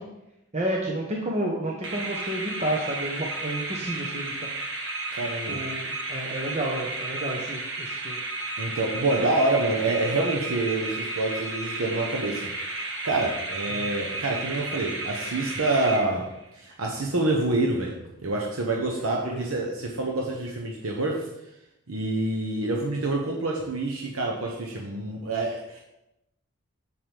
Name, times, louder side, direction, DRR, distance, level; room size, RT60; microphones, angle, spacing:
voice 1, 0.5-4.5 5.5-8.2 13.7-13.9 19.2-19.6, right 1 dB, 30° right, -2 dB, 1.0 m, -31 dB
sound 1, 1.8-16.5, right 2 dB, 65° right, 1.4 m, -33 dB
voice 2, 5.1-5.6 8.6-16.3 16.5-21.3 21.9-25.8, right 2 dB, 90° right, 0 dB, 1.0 m, -27 dB
7.8 x 7.4 x 3.5 m, 0.88 s
head